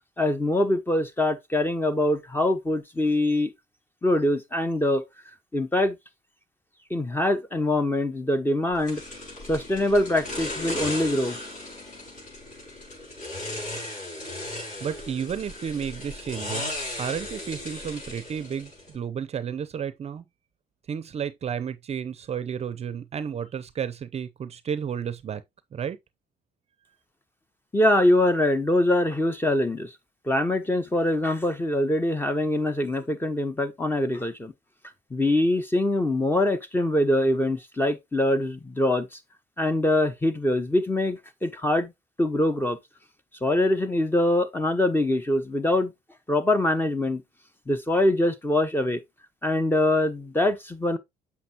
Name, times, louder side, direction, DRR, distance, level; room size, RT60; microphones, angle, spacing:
voice 1, 0.2-3.5 4.0-5.0 5.5-6.0 6.9-9.0 9.5-11.4 27.7-29.9 30.3-34.5 35.1-39.2 39.6-41.9 42.2-42.8 43.4-45.9 46.3-47.2 47.7-49.0 49.4-51.0, left 1 dB, 10° left, 1.1 m, -23 dB
sound 1, 8.9-19.0, left 1 dB, 50° left, 5.8 m, -36 dB
voice 2, 14.8-20.2 20.9-25.4 25.7-26.0, right 7 dB, 40° right, 0.6 m, -32 dB
7.8 x 5.8 x 2.9 m
cardioid pair, 110°, 17 cm